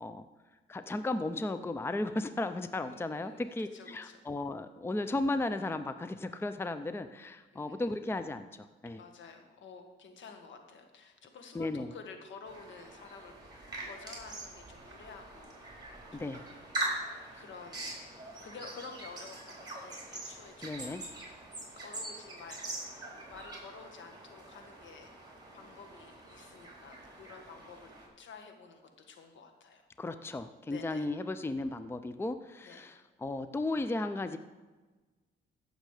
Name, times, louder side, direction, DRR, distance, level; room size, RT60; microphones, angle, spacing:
voice 1, 0.7-8.5 8.8-9.0 11.5-11.9 16.1-16.4 20.6-21.0 30.0-34.4, left 2 dB, 10° left, 11 dB, 0.5 m, -35 dB
voice 2, 2.8-4.2 7.5-8.0 8.9-16.6 17.3-17.9 18.4-21.4 21.8-22.6 23.3-25.1 25.5-27.9 28.2-29.9 30.7-31.1 32.6-33.0, left 5 dB, 70° left, 5 dB, 1.7 m, -51 dB
sound 1, 12.5-28.1, right 2 dB, 20° right, 4.1 m, -43 dB
15.5 x 6.6 x 4.9 m, 1.3 s
cardioid pair, 90°, 20 cm